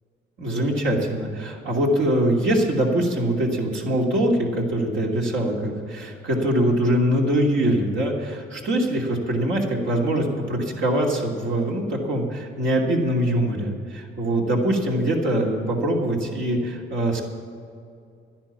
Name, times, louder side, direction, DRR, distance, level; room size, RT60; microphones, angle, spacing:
voice 1, 0.4-17.2, right 1 dB, 70° right, -1 dB, 2.8 m, -23 dB
11.5 x 10.5 x 7.2 m, 2.4 s
cardioid pair, 90°, 20 cm